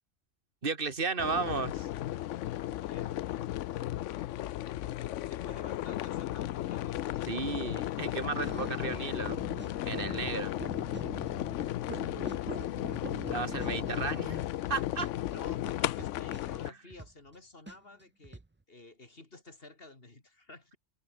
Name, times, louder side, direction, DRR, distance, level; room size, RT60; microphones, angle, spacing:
voice 1, 0.6-1.9 7.3-9.4 9.9-10.5 13.3-15.1 16.7-16.8, right 4 dB, 50° right, 2.5 m, -34 dB
sound 1, 1.2-16.7, left 13 dB, 85° left, 0.9 m, -35 dB
voice 2, 2.9-3.2 5.3-7.1 8.1-9.0 12.0-13.2 13.6-13.7 15.3-18.4 18.7-20.8, left 2 dB, 50° left, 3.5 m, -52 dB
sound 2, 8.4-14.7 15.0-15.1 15.3-17.3 17.7-17.8 18.0-18.5, right 2 dB, 20° right, 0.3 m, -44 dB
open air
omnidirectional pair, 1.2 m